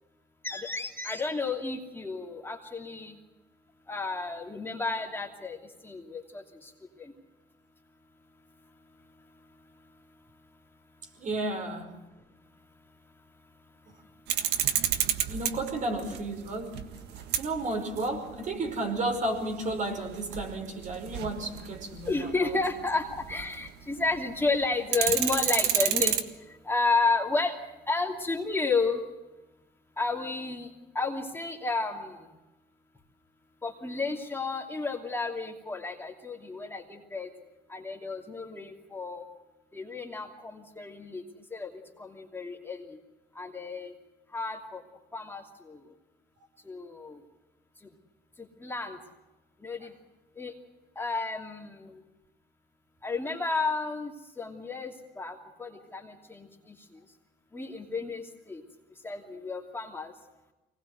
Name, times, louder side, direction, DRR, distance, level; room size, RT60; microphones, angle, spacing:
voice 1, 0.4-3.1 3.9-5.6 5.8-6.7 7.0-7.1 22.1-26.2 26.6-27.5 27.9-29.0 30.0-30.7 30.9-32.1 33.6-37.3 37.7-39.2 39.7-41.2 41.5-41.7 42.0-42.8 43.4-43.9 44.3-44.8 45.1-45.4 45.7-45.8 46.7-47.2 48.6-49.0 49.6-49.9 50.4-50.5 51.0-52.0 53.0-54.1 54.4-56.5 57.5-58.6 59.0-60.1, left 3 dB, 15° left, 2.8 m, -31 dB
voice 2, 11.2-12.1 15.3-17.0 17.4-22.6, right 2 dB, 50° right, 5.4 m, -33 dB
sound 1, 14.3-23.8 24.1-24.2 24.5-26.2, right 10 dB, 80° right, 1.6 m, -30 dB
24.5 x 19.5 x 8.1 m
cardioid pair, 110°, 17 cm